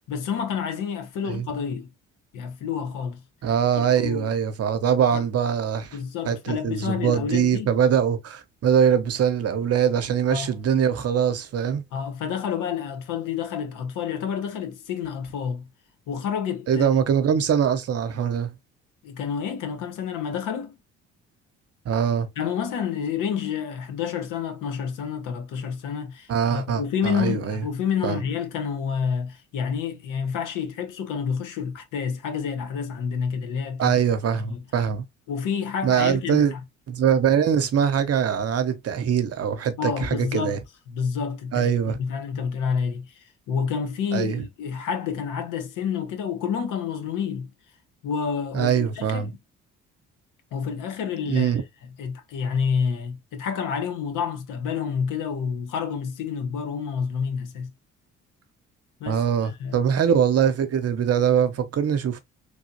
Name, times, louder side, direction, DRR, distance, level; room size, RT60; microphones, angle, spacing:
voice 1, 0.1-1.9 2.3-3.2 3.7-4.3 5.1-5.2 5.9-7.7 10.3-10.5 11.9-15.7 16.1-16.9 19.0-20.8 22.4-34.0 34.4-34.6 35.3-36.6 39.8-40.6 40.9-47.5 48.0-49.3 50.5-51.5 52.0-57.7 59.0-59.8, left 7 dB, 70° left, 0.9 m, -29 dB
voice 2, 3.4-6.0 6.3-11.8 16.7-18.5 21.8-22.3 26.3-27.6 28.0-28.2 33.8-35.0 35.8-36.5 36.9-40.6 41.5-42.0 44.1-44.4 48.5-49.3 51.3-51.6 59.1-62.2, right 8 dB, 50° right, 0.8 m, -22 dB
3.3 x 2.7 x 2.7 m
hypercardioid pair, 55°, 32 cm